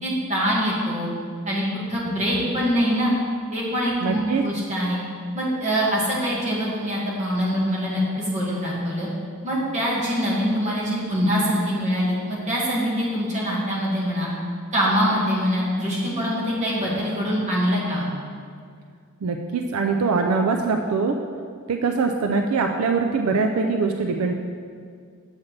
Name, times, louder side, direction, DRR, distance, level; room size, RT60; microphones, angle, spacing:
voice 1, 0.0-1.1 1.5-1.6 1.9-3.2 3.5-5.0 5.3-9.1 9.4-14.3 14.7-18.1, equal, 35° right, -6 dB, 1.8 m, -24 dB
voice 2, 4.0-4.4 19.2-21.2 21.7-24.3, right 4 dB, 80° right, 4 dB, 0.4 m, -23 dB
7.2 x 7.2 x 3.2 m, 2.1 s
head